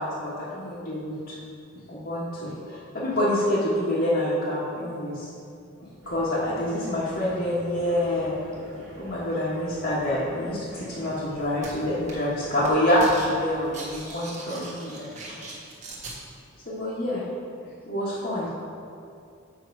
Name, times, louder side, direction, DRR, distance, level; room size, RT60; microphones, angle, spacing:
voice 1, 0.0-1.4 1.7-5.3 5.8-8.4 8.9-15.1 16.6-17.3 17.6-18.5, left 1 dB, 45° left, -10 dB, 1.4 m, -27 dB
sound 1, 6.0-14.0, right 1 dB, 85° right, 1.8 m, -45 dB
sound 2, 11.6-11.7 12.1-12.3 12.6-13.3 13.6-16.2, right 2 dB, 35° right, 1.4 m, -40 dB
7.8 x 6.1 x 4.6 m, 2.5 s
head